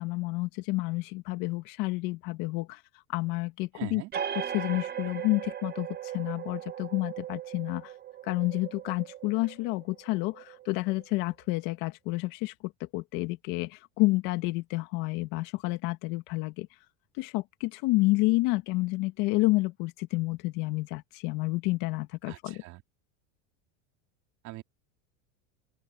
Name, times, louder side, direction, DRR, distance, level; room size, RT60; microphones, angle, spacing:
voice 1, 0.0-2.8 3.1-4.0 4.5-7.9 8.2-16.7 17.2-22.6, left 21 dB, 55° left, 1.9 m, -29 dB
voice 2, 3.7-4.1 22.3-22.8 24.4-24.6, right 17 dB, 45° right, 3.0 m, -42 dB
sound 1, 4.1-11.3, right 9 dB, 25° right, 1.4 m, -38 dB
open air
cardioid pair, 155°, 38 cm